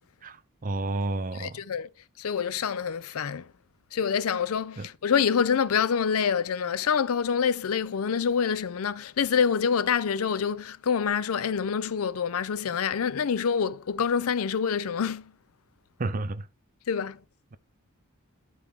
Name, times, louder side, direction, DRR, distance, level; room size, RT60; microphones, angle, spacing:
voice 1, 0.6-1.6 4.8-4.9 16.0-16.5, right 2 dB, 40° right, 0.6 m, -30 dB
voice 2, 1.4-1.9 2.2-3.5 3.9-15.3 16.9-17.2, left 6 dB, 75° left, 0.5 m, -26 dB
12.0 x 4.6 x 3.5 m
head